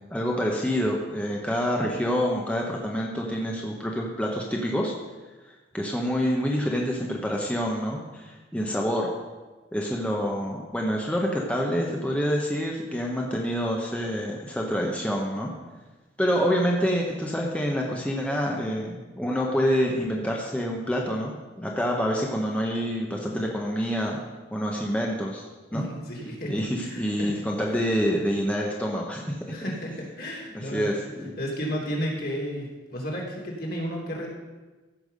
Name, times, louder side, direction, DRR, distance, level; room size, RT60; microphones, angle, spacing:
voice 1, 0.1-4.9 5.5-9.1 9.7-15.5 16.2-24.2 24.5-25.4 25.7-25.8 26.5-29.3 30.5-31.4, equal, 5° left, -1 dB, 1.2 m, -27 dB
voice 2, 25.7-26.5 26.8-27.3 27.7-27.8 29.5-30.9 31.4-34.3, equal, 55° left, -2 dB, 3.1 m, -32 dB
14.5 x 5.9 x 6.7 m, 1.2 s
head